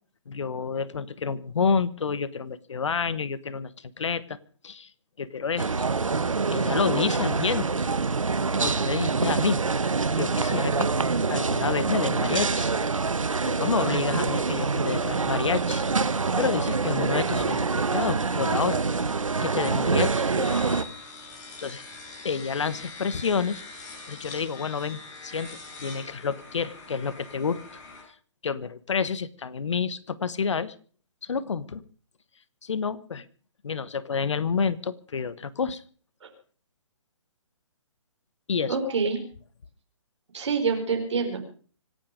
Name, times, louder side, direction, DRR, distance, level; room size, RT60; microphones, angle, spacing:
voice 1, 0.3-3.7 4.0-4.4 4.6-4.9 5.2-5.9 6.5-7.7 8.5-9.6 10.2-10.9 11.3-12.7 13.4-15.8 16.4-18.8 19.4-20.3 21.6-21.8 22.2-23.6 24.1-27.6 28.4-30.7 31.2-31.8 32.6-33.2 33.6-35.8 38.5-38.8, left 5 dB, 65° left, 17 dB, 1.4 m, -29 dB
sound 1, 5.6-20.8, right 4 dB, 80° right, 1.3 m, -26 dB
sound 2, 17.4-28.0, left 3 dB, 35° left, 6.0 m, -44 dB
voice 2, 20.2-20.7 36.2-36.3 38.7-39.2 40.3-41.5, right 5 dB, 65° right, 3 dB, 4.6 m, -27 dB
25.5 x 9.4 x 5.2 m, 0.43 s
figure-of-eight pair, 140°, 16 cm